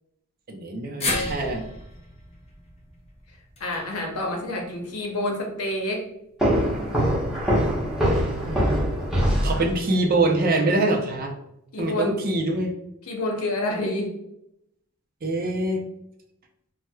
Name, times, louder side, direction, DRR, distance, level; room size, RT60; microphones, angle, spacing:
voice 1, 0.5-1.6 8.5-8.9 9.4-11.3 11.8-12.7 15.2-15.8, right 2 dB, 40° right, 3 dB, 0.5 m, -24 dB
sound 1, 1.0-5.3 5.6-5.7 6.9-7.0, left 2 dB, 30° left, 0.5 m, -34 dB
voice 2, 3.6-6.0 11.7-12.2 13.1-14.1, left 1 dB, 90° left, 0 dB, 0.8 m, -28 dB
sound 2, 6.4-10.1, equal, 5° right, 0.9 m, -23 dB
4.4 x 2.1 x 2.2 m, 0.80 s
head